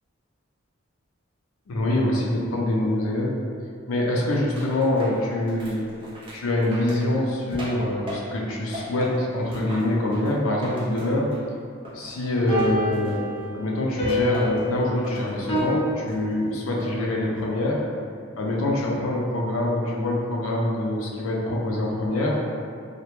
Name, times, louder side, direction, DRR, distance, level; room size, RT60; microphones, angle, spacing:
voice 1, 1.7-3.4 3.9-5.8 6.3-11.3 11.9-13.2 13.5-17.9 18.4-22.4, left 1 dB, 90° left, -2 dB, 0.4 m, -25 dB
sound 1, 4.6-8.5 8.7-11.5 11.8-13.5 14.1-14.7 15.0-15.7 16.1-17.0 17.4-17.8, equal, 25° right, 0.4 m, -39 dB
sound 2, 12.5-15.6, left 1 dB, 30° left, 0.5 m, -28 dB
2.1 x 2.1 x 2.9 m, 2.3 s
head